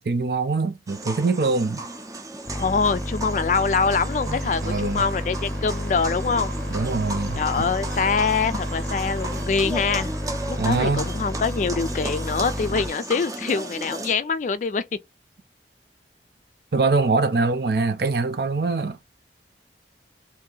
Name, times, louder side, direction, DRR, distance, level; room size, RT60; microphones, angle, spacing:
voice 1, 0.0-1.8 4.3-5.0 6.7-7.4 10.6-11.1 16.7-19.0, right 3 dB, 60° right, 0.5 m, -23 dB
sound 1, 0.9-14.1, right 2 dB, 20° right, 0.6 m, -36 dB
voice 2, 2.5-6.5 7.3-10.1 10.5-14.8, left 5 dB, 45° left, 0.3 m, -24 dB
sound 2, 2.5-12.9, left 1 dB, 15° left, 0.7 m, -31 dB
sound 3, 3.8-9.4, right 3 dB, 75° right, 1.3 m, -42 dB
2.8 x 2.6 x 3.8 m
head